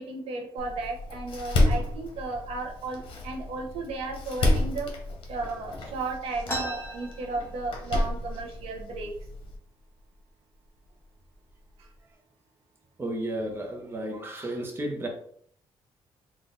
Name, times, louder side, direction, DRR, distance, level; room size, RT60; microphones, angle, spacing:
voice 1, 0.0-4.9 5.3-9.2 11.8-11.9, right 3 dB, 90° right, 2 dB, 0.8 m, -34 dB
Door, 0.6-9.6, left 1 dB, 60° left, 1.0 m, -30 dB
sound 1, 6.5-8.1 8.4-8.5 8.8-9.4 10.0-10.1 10.8-11.0 11.5-11.9, equal, 25° left, 1.1 m, -36 dB
voice 2, 13.0-15.1, right 1 dB, 25° right, 1 dB, 0.8 m, -33 dB
3.9 x 2.4 x 3.8 m, 0.63 s
cardioid pair, 120°, 10 cm